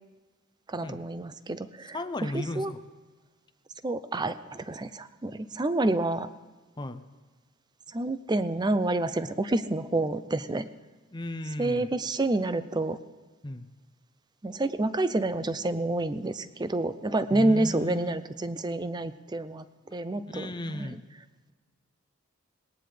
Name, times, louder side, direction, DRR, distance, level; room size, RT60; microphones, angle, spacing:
voice 1, 0.7-2.7 3.8-6.3 7.9-10.7 11.6-13.0 14.4-19.6 19.9-21.0, right 2 dB, 20° right, 13 dB, 0.5 m, -28 dB
voice 2, 1.9-2.8 6.8-7.0 11.1-11.9 13.4-13.7 17.3-18.2 20.3-21.0, left 1 dB, 20° left, 9 dB, 0.7 m, -35 dB
19.5 x 18.0 x 3.4 m, 1.3 s
head